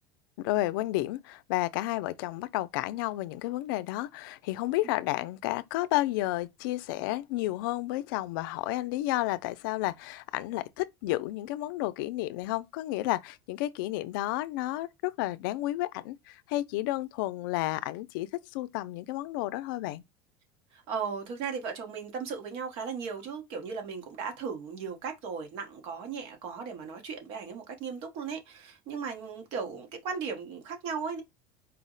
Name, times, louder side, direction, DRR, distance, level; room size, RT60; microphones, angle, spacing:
voice 1, 0.4-20.0, left 17 dB, 90° left, 0.4 m, -31 dB
voice 2, 20.7-31.2, right 5 dB, 60° right, 1.2 m, -36 dB
4.4 x 2.1 x 3.8 m
cardioid pair, 160°, 11 cm